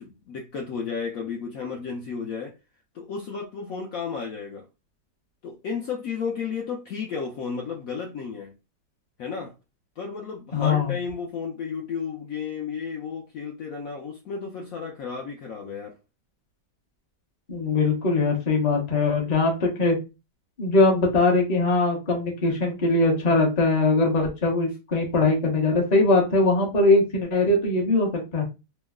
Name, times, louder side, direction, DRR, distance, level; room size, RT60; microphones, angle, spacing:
voice 1, 0.0-2.5 2.9-4.7 5.4-8.5 9.2-9.5 10.0-15.9, left 5 dB, 65° left, 0.9 m, -33 dB
voice 2, 10.5-10.9 17.5-20.0 20.6-28.4, left 3 dB, 30° left, 0.8 m, -21 dB
3.0 x 2.1 x 3.5 m
omnidirectional pair, 1.9 m